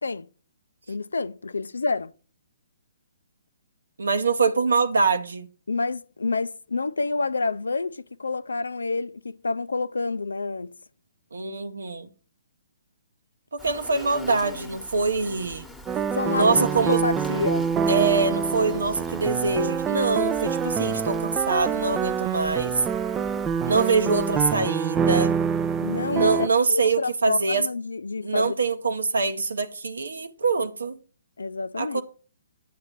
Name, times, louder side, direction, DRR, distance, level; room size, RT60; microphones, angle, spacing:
voice 1, 0.9-2.1 5.7-10.7 16.1-17.7 25.8-26.3 26.7-28.5 31.4-32.0, left 3 dB, 80° left, 0.4 m, -28 dB
voice 2, 4.0-5.5 11.3-12.1 13.5-15.6 16.3-17.1 17.9-22.8 23.6-25.4 26.1-27.7 28.2-31.0 31.8-32.0, right 4 dB, 75° right, 0.9 m, -24 dB
Insect, 13.6-24.6, left 1 dB, ahead, 1.2 m, -42 dB
sound 1, 15.9-26.5, right 6 dB, 20° right, 0.5 m, -26 dB
9.3 x 7.7 x 4.4 m
figure-of-eight pair, 130°, 0 cm